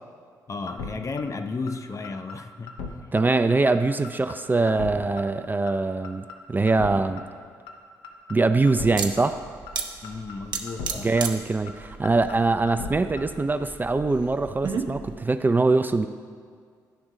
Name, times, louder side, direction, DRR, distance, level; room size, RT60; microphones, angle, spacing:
voice 1, 0.5-3.1 10.0-11.1, left 4 dB, 35° left, 8 dB, 0.5 m, -34 dB
sound 1, 0.7-0.9 1.2-1.3 1.7-1.8 2.0-2.4 2.7-2.9 3.2-3.3 3.7-3.8 4.0-4.4 4.7-4.9 5.2-5.3 5.7-5.8 6.0-6.4 6.7-6.9 7.2-7.3 7.7-7.8 8.0-8.4 8.7-8.9 9.2-9.3 9.7-9.8 10.0-10.4 10.7-10.9 11.2-11.3 11.7-11.8 12.0-12.4 12.7-12.9 13.2-13.3, left 5 dB, 70° left, 0.7 m, -36 dB
voice 2, 3.1-7.2 8.3-9.4 11.0-16.1, right 3 dB, 20° right, 9 dB, 0.4 m, -23 dB
sound 2, 8.8-15.2, right 5 dB, 55° right, 0.7 m, -35 dB
10.5 x 3.5 x 5.0 m, 2.1 s
hypercardioid pair, 40°, 9 cm